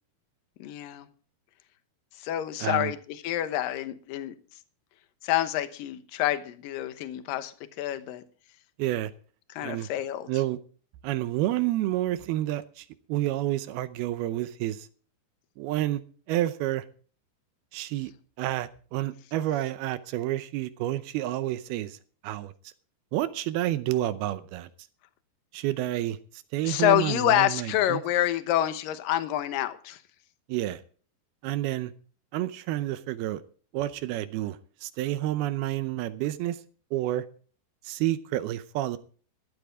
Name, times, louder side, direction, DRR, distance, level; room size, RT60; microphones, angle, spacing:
voice 1, 0.6-1.1 2.2-4.4 5.2-8.2 9.6-10.3 26.6-30.0, left 13 dB, 70° left, 10 dB, 2.6 m, -27 dB
voice 2, 2.6-2.9 8.8-9.1 9.6-9.9 10.3-10.6 11.0-14.9 15.6-16.0 16.3-16.9 17.7-18.1 18.4-22.0 22.2-22.7 23.1-24.7 25.5-26.2 26.5-28.0 30.5-30.8 31.4-31.9 32.3-33.4 33.7-36.6 36.9-37.3 37.8-39.0, right 14 dB, 80° right, 13 dB, 2.6 m, -29 dB
15.0 x 12.5 x 3.7 m, 0.42 s
omnidirectional pair, 4.5 m